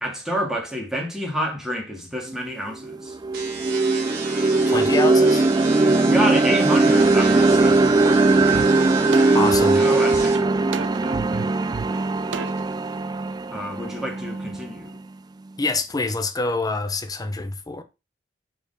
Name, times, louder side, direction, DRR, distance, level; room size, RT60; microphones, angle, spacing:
voice 1, 0.0-3.1 5.8-8.9 9.7-10.8 13.5-15.0, equal, 5° right, 2.0 m, -29 dB
sound 1, 2.3-2.4 2.8-14.9, right 3 dB, 20° right, 0.3 m, -19 dB
sound 2, 3.3-10.4, right 5 dB, 55° right, 1.9 m, -34 dB
voice 2, 4.7-5.4 9.3-9.8 15.6-17.8, left 3 dB, 20° left, 0.7 m, -26 dB
sound 3, 8.5-8.7 9.1-12.7, right 5 dB, 80° right, 0.6 m, -32 dB
5.5 x 4.5 x 5.3 m
head